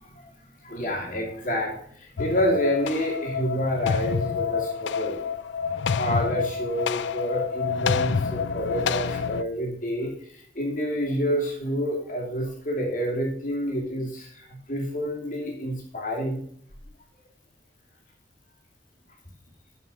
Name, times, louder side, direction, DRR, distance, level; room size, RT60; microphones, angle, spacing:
voice 1, 0.6-5.2 6.0-10.1 10.5-14.4 14.7-16.4, equal, 45° left, -1 dB, 2.8 m, -28 dB
sound 1, 2.2-9.4, left 6 dB, 75° left, 0.4 m, -28 dB
7.1 x 7.0 x 6.0 m, 0.63 s
head